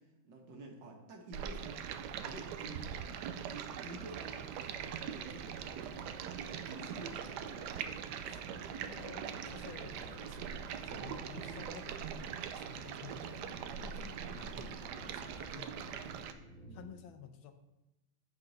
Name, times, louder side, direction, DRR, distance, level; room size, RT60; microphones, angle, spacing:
voice 1, 0.0-1.8 2.2-3.0 3.5-6.2 6.5-8.0 13.1-14.5 16.6-16.9, right 2 dB, 60° right, 2 dB, 1.6 m, -51 dB
Stream, 1.3-16.3, right 8 dB, 85° right, 0.9 m, -42 dB
voice 2, 2.5-3.2 8.8-16.1 16.7-17.5, left 8 dB, 70° left, 7 dB, 1.4 m, -53 dB
sound 1, 5.3-16.9, equal, 25° right, 1.6 m, -56 dB
8.7 x 6.7 x 3.9 m, 0.99 s
omnidirectional pair, 2.4 m